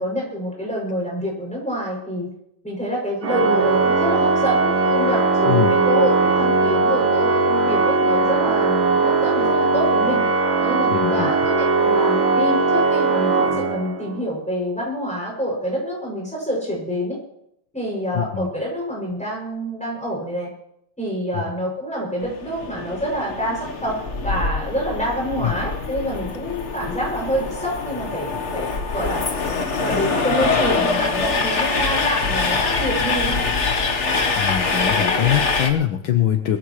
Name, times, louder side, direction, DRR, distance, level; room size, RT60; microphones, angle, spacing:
voice 1, 0.0-2.3 2.6-10.2 10.6-17.2 17.7-20.5 21.0-24.0 24.2-29.2 29.8-33.5, equal, 5° left, -3 dB, 6.6 m, -27 dB
Organ, 3.2-14.2, right 3 dB, 70° right, 1.9 m, -19 dB
voice 2, 5.5-5.8 10.9-11.3 18.1-18.5 21.3-21.4 25.4-25.5 34.3-36.6, left 11 dB, 75° left, 6 dB, 1.7 m, -22 dB
Train, 22.2-35.7, left 4 dB, 40° left, 1.3 m, -24 dB
21.5 x 14.5 x 3.2 m, 0.78 s
omnidirectional pair, 2.3 m